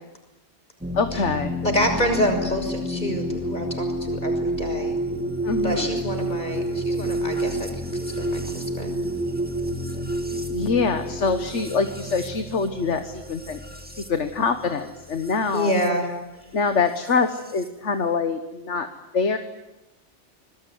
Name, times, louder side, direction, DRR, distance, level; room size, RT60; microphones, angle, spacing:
sound 1, 0.8-15.9 17.0-17.7, right 1 dB, 5° right, 2.4 m, -30 dB
voice 1, 0.9-1.5 5.4-5.9 10.5-13.6 14.1-15.7 16.5-18.9 19.1-19.4, left 4 dB, 70° left, 8 dB, 1.7 m, -24 dB
voice 2, 1.6-4.9 5.6-7.7 8.2-9.0 15.5-16.1, equal, 40° left, 4 dB, 6.4 m, -27 dB
26.5 x 21.0 x 9.4 m, 0.96 s
omnidirectional pair, 1.2 m